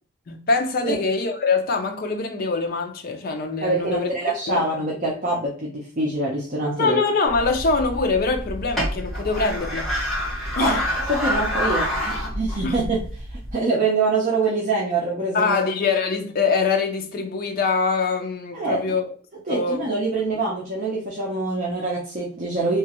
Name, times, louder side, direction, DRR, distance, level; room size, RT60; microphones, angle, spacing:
voice 1, 0.3-4.1 4.5-4.9 6.8-9.9 10.5-10.8 12.6-12.8 15.3-19.1 19.5-19.8, left 4 dB, 45° left, 0.5 m, -23 dB
voice 2, 3.6-7.0 10.6-10.8 11.1-13.0 13.3-15.6 18.5-18.8 19.5-22.8, right 3 dB, 40° right, 0.6 m, -25 dB
sound 1, 7.3-13.5, equal, ahead, 1.5 m, -27 dB
3.0 x 2.4 x 2.9 m
head